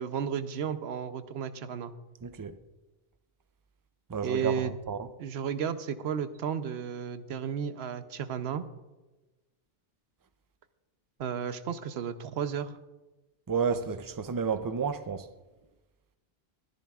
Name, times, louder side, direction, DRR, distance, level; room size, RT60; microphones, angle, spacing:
voice 1, 0.0-1.9 4.2-4.8 5.2-8.7 11.2-12.7, right 7 dB, 80° right, 1.0 m, -33 dB
voice 2, 2.2-2.5 4.1-5.1 13.5-15.3, right 6 dB, 35° right, 0.3 m, -31 dB
24.0 x 10.5 x 2.4 m
omnidirectional pair, 1.1 m